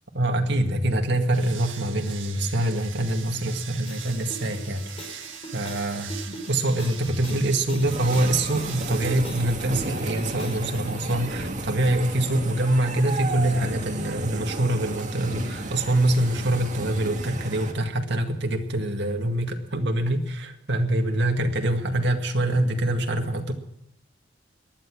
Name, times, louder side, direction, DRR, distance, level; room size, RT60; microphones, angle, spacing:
voice 1, 0.2-5.2 5.5-23.5, right 1 dB, 60° right, 3 dB, 2.1 m, -25 dB
sound 1, 1.3-9.2, right 9 dB, 80° right, 1.8 m, -42 dB
sound 2, 3.8-11.0, equal, 35° left, 4.9 m, -42 dB
sound 3, 7.8-17.7, right 2 dB, 40° right, 2.1 m, -34 dB
18.5 x 12.0 x 6.3 m, 0.74 s
head